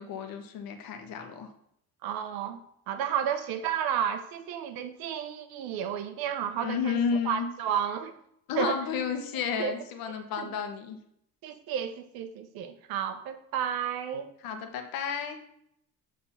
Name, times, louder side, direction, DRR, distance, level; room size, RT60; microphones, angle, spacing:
voice 1, 0.0-1.5 6.6-7.5 8.5-11.0 14.4-15.4, left 6 dB, 75° left, 6 dB, 1.2 m, -32 dB
voice 2, 2.0-2.6 2.9-8.1 8.5-8.8 9.6-9.7 10.4-10.5 11.4-14.3, right 9 dB, 85° right, 9 dB, 0.9 m, -32 dB
7.4 x 3.8 x 5.7 m, 0.72 s
cardioid pair, 125°, 35 cm